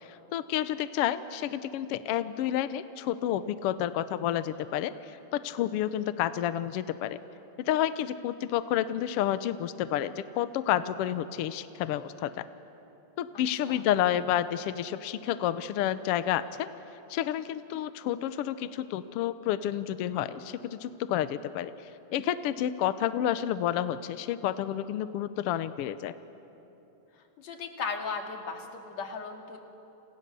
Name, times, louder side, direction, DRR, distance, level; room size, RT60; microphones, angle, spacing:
voice 1, 0.3-7.2 7.6-12.4 13.2-16.7 17.1-21.7 22.1-26.1, left 11 dB, 80° left, 13 dB, 1.3 m, -30 dB
voice 2, 27.4-29.6, left 5 dB, 60° left, 3 dB, 3.4 m, -36 dB
29.5 x 29.0 x 6.8 m, 3.0 s
omnidirectional pair, 3.6 m